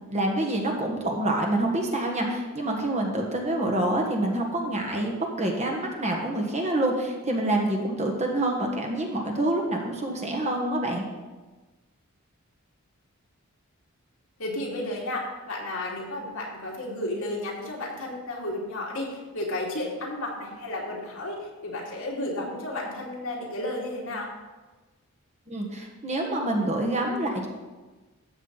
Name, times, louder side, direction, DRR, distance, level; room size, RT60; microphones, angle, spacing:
voice 1, 0.1-11.0 25.5-27.5, right 1 dB, 30° right, 1 dB, 1.5 m, -27 dB
voice 2, 14.4-24.3, left 1 dB, 65° left, -3 dB, 2.8 m, -33 dB
13.0 x 7.9 x 4.1 m, 1.2 s
head